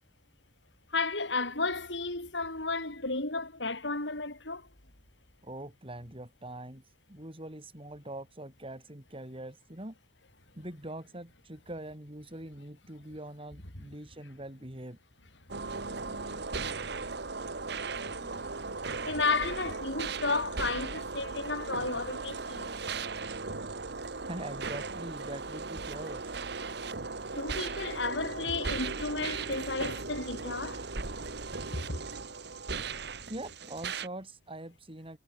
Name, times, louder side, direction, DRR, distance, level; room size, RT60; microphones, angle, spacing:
voice 1, 0.9-4.7 13.8-13.9 15.7-16.3 16.6-17.0 18.1-22.7 27.3-30.8 31.7-32.0, left 3 dB, 75° left, 6.1 m, -33 dB
voice 2, 5.4-6.8 7.1-9.9 10.5-15.0 24.2-26.3 33.3-35.2, right 1 dB, 30° right, 5.0 m, -43 dB
sound 1, 15.5-34.1, right 4 dB, 65° right, 1.7 m, -37 dB
head